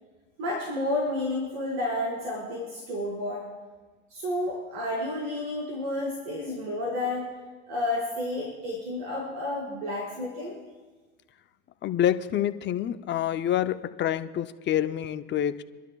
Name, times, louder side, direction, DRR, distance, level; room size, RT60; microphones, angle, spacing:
voice 1, 0.4-3.4 4.1-7.3 7.7-10.5, left 1 dB, 75° right, -4 dB, 5.1 m, -31 dB
voice 2, 11.8-15.6, left 11 dB, 35° left, 10 dB, 0.7 m, -27 dB
29.0 x 12.0 x 2.4 m, 1.3 s
hypercardioid pair, 90°, 31 cm